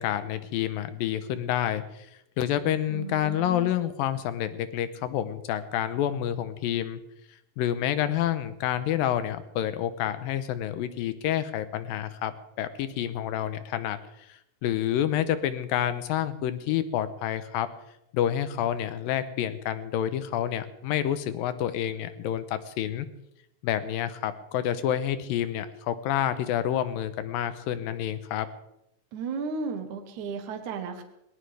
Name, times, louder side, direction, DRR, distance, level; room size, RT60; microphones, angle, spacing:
voice 1, 0.0-1.8 2.4-7.0 7.6-14.0 14.6-17.7 18.1-23.1 23.6-28.5, left 11 dB, 80° left, 12 dB, 2.6 m, -28 dB
voice 2, 2.9-3.7 29.1-31.0, right 4 dB, 65° right, 5 dB, 2.4 m, -34 dB
19.5 x 19.5 x 3.4 m, 0.83 s
omnidirectional pair, 4.2 m